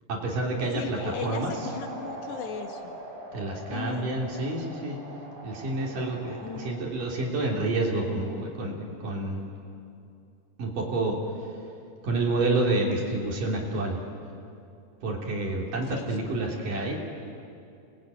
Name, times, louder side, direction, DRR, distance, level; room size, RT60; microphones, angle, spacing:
voice 1, 0.1-1.7 3.3-5.0 5.4-9.4 10.6-11.2 12.0-14.0 15.0-17.0, right 2 dB, 50° right, -1 dB, 4.5 m, -29 dB
voice 2, 0.7-2.9 3.7-4.1 6.4-6.8 15.9-16.3, left 7 dB, 70° left, 4 dB, 3.4 m, -38 dB
sound 1, 1.0-6.7, right 2 dB, 25° right, 3.8 m, -41 dB
28.5 x 21.0 x 9.3 m, 2.5 s
omnidirectional pair, 5.3 m